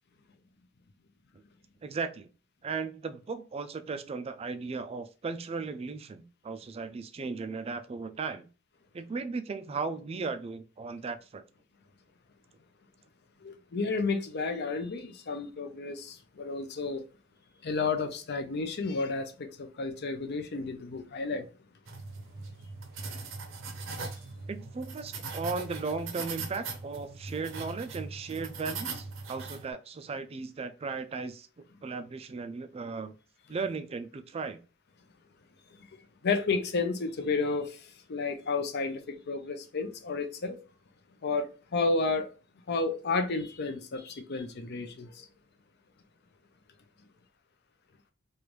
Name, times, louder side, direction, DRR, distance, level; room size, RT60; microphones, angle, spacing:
voice 1, 1.8-2.3 2.6-8.5 8.9-11.4 24.5-31.5 31.8-33.2 33.5-34.6, right 4 dB, 30° right, 0.3 m, -36 dB
voice 2, 13.4-17.0 17.6-21.5 35.8-35.9 36.2-40.6 41.2-42.3 42.7-45.3, left 4 dB, 55° left, 0.6 m, -32 dB
sound 1, 21.9-29.7, right 4 dB, 70° right, 0.7 m, -40 dB
3.2 x 2.5 x 3.0 m
head